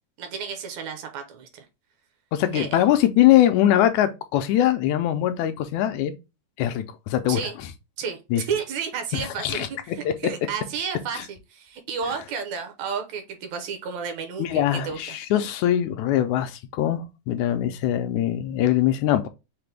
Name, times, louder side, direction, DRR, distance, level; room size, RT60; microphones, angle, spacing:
voice 1, 0.2-1.7 2.5-2.7 7.3-7.6 8.0-15.2, right 6 dB, 75° right, 2.1 m, -32 dB
voice 2, 2.3-6.1 6.6-7.4 8.3-8.4 9.4-10.1 11.2-11.3 14.4-19.3, left 12 dB, 80° left, 1.9 m, -22 dB
5.8 x 2.2 x 3.3 m
omnidirectional pair, 3.4 m